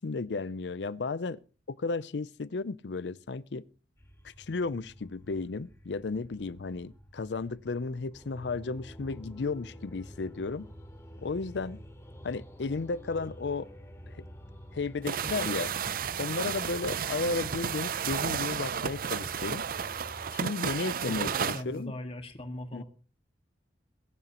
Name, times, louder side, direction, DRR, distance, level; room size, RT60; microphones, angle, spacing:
voice 1, 0.0-1.4 1.7-3.6 4.2-10.7 11.2-11.8 12.2-13.7 14.1-14.3 14.7-15.7 16.2-19.6 20.3-21.9 22.7-22.8, left 4 dB, 75° left, 0.5 m, -34 dB
sound 1, 4.0-20.3, equal, 15° left, 2.7 m, -48 dB
sound 2, 15.1-21.6, right 7 dB, 55° right, 0.5 m, -32 dB
voice 2, 21.0-22.8, left 1 dB, 35° left, 1.7 m, -39 dB
22.0 x 10.5 x 3.0 m
head